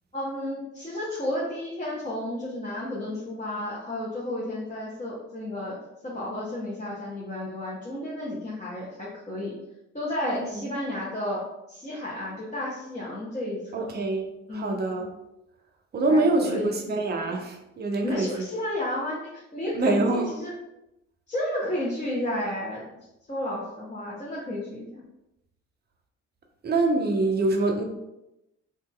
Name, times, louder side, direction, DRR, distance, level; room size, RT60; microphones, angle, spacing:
voice 1, 0.1-5.8 6.0-9.5 9.9-11.4 11.7-13.9 14.5-14.8 16.1-16.7 18.0-20.5 21.3-22.8 23.3-25.0, left 1 dB, 20° left, -7 dB, 0.8 m, -32 dB
voice 2, 10.3-10.6 13.7-15.1 15.9-18.5 19.7-20.3 26.6-27.8, right 2 dB, 25° right, 3 dB, 0.6 m, -25 dB
2.9 x 2.6 x 2.3 m, 0.90 s
figure-of-eight pair, 40°, 38 cm